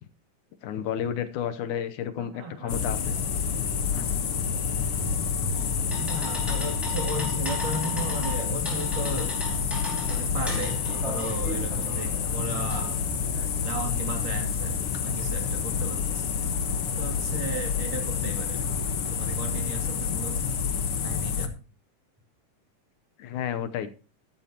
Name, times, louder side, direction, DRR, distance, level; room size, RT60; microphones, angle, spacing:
voice 1, 0.6-3.2 3.9-4.1 23.2-23.9, left 9 dB, 75° left, 11 dB, 2.3 m, -31 dB
voice 2, 2.2-2.8 6.0-9.3 10.1-13.0 13.6-14.7 15.0-16.3 17.0-18.6 19.1-20.4 21.0-21.6, right 3 dB, 80° right, 2 dB, 4.3 m, -36 dB
sound 1, 2.7-21.5, left 6 dB, 55° left, 1.8 m, -28 dB
sound 2, 5.5-13.4, right 1 dB, ahead, 4.8 m, -38 dB
13.0 x 12.0 x 2.9 m, 0.34 s
omnidirectional pair, 3.7 m